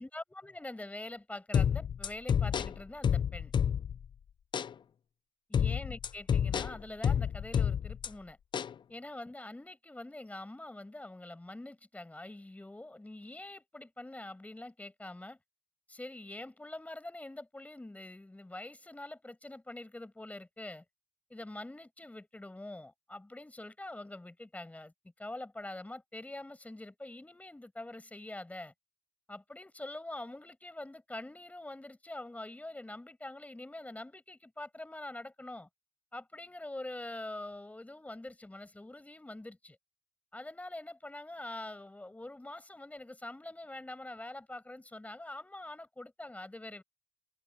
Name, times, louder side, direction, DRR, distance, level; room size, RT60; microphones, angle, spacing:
voice 1, 0.0-3.5 5.5-8.4 8.9-15.4 15.9-20.8 21.3-28.7 29.3-35.7 36.1-39.8 40.3-46.8, left 2 dB, 15° left, 7.6 m, -45 dB
sound 1, 1.5-4.1 4.5-4.7 5.5-8.1 8.5-8.7, left 8 dB, 55° left, 0.4 m, -29 dB
cardioid pair, 90°, 9 cm